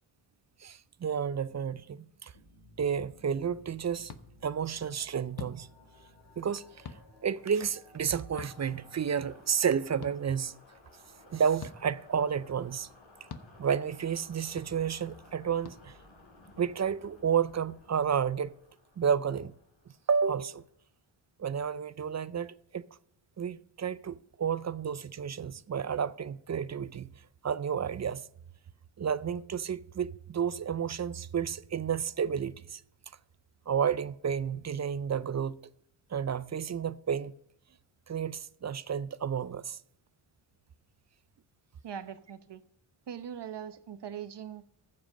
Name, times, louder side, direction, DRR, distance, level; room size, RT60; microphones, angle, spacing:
voice 1, 0.6-2.3 2.8-4.1 4.4-5.7 6.4-6.6 7.2-10.5 11.3-12.9 13.6-15.9 16.6-18.5 19.0-19.5 20.1-20.6 21.4-22.9 23.4-27.1 27.4-28.2 29.0-32.8 33.7-35.6 36.1-37.3 38.1-39.8, right 7 dB, 35° right, 0.5 m, -31 dB
sound 1, 2.3-20.8, left 2 dB, 65° left, 3.8 m, -57 dB
sound 2, 4.1-4.2 5.3-5.6 6.8-7.0 8.4-8.5 10.0-10.1 11.6-11.8 13.3-13.5 14.6-14.7 15.6-15.8, left 6 dB, 50° left, 1.0 m, -42 dB
voice 2, 41.8-42.6 43.1-44.6, right 8 dB, 55° right, 1.0 m, -41 dB
14.0 x 7.8 x 5.0 m
cardioid pair, 85°, 49 cm